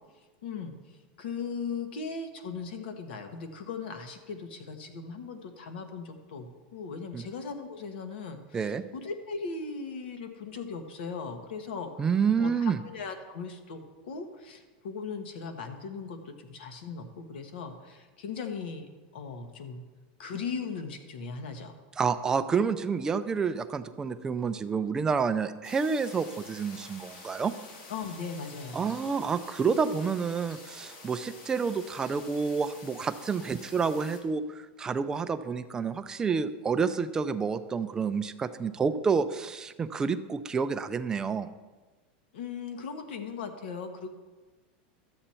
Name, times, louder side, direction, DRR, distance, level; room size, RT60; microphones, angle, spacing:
voice 1, 0.4-12.1 12.4-19.8 20.2-21.7 27.9-29.0 42.3-44.1, left 5 dB, 75° left, 7 dB, 1.4 m, -38 dB
voice 2, 12.0-12.8 22.0-27.5 28.7-41.5, right 5 dB, 10° right, 10 dB, 0.4 m, -29 dB
sound 1, 25.6-34.2, left 3 dB, 60° left, 2.0 m, -48 dB
12.5 x 7.9 x 4.4 m, 1.3 s
supercardioid pair, 165°, 5 cm